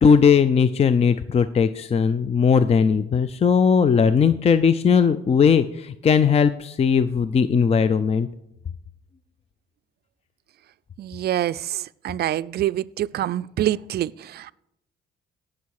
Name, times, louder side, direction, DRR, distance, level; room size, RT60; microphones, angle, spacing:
voice 1, 0.0-8.3, left 6 dB, 30° left, 13 dB, 0.4 m, -18 dB
voice 2, 11.0-14.5, right 12 dB, 55° right, 17 dB, 0.4 m, -26 dB
17.0 x 6.3 x 4.8 m, 0.83 s
cardioid pair, 90°, 20 cm